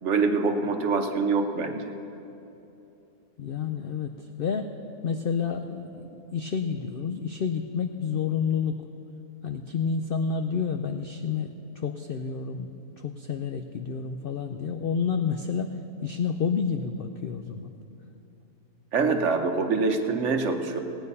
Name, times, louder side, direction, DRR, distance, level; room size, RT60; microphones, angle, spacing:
voice 1, 0.0-1.9 18.9-20.8, right 4 dB, 55° right, 5 dB, 1.1 m, -25 dB
voice 2, 3.4-4.7 5.0-8.8 9.4-11.5 11.8-12.7 13.0-15.8 16.0-17.7, left 6 dB, 70° left, 6 dB, 0.5 m, -29 dB
17.5 x 9.0 x 5.5 m, 2.9 s
omnidirectional pair, 1.6 m